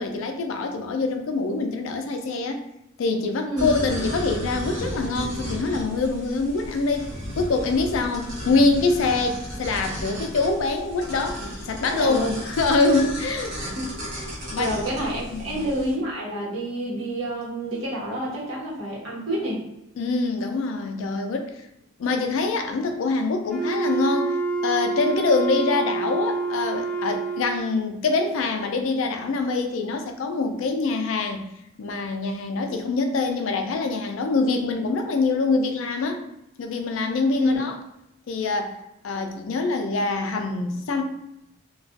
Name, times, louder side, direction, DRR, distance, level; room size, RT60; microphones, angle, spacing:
voice 1, 0.0-2.6 3.0-7.1 7.4-13.7 14.5-14.7 15.3-15.6 20.0-21.6 22.0-31.4 31.8-36.2 36.6-37.7 38.3-38.8 39.0-41.0, left 3 dB, 80° left, 5 dB, 0.4 m, -25 dB
sound 1, 3.6-15.9, equal, 55° right, 1.0 m, -34 dB
voice 2, 12.0-12.3 13.8-13.9 14.6-19.6 37.4-37.6, equal, 85° right, -5 dB, 1.0 m, -28 dB
Wind instrument woodwind instrument, 23.5-27.8, right 4 dB, 5° left, 0.4 m, -27 dB
2.4 x 2.2 x 2.4 m, 0.85 s
head